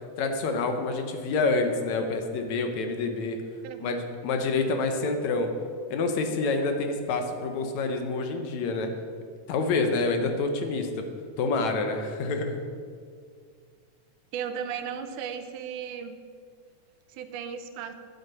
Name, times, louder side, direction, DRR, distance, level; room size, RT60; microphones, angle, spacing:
voice 1, 0.2-3.4 3.8-5.5 5.9-8.9 9.5-11.1 11.4-12.6, left 3 dB, 70° left, 5 dB, 2.2 m, -27 dB
voice 2, 3.6-4.0 14.3-16.2 17.1-17.9, right 7 dB, 85° right, 9 dB, 2.3 m, -35 dB
10.5 x 8.0 x 6.8 m, 2.1 s
omnidirectional pair, 3.5 m